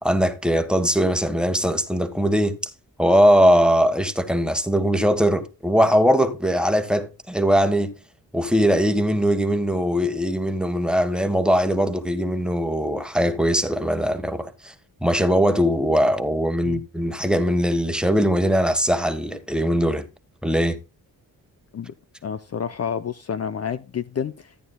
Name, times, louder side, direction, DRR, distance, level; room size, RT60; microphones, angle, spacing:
voice 1, 0.0-2.6 3.0-7.9 8.3-14.7 15.0-20.1 20.4-20.8, equal, ahead, 1.4 m, -20 dB
voice 2, 22.2-24.6, left 7 dB, 40° left, 0.6 m, -29 dB
14.0 x 9.4 x 2.3 m
cardioid pair, 65°, 38 cm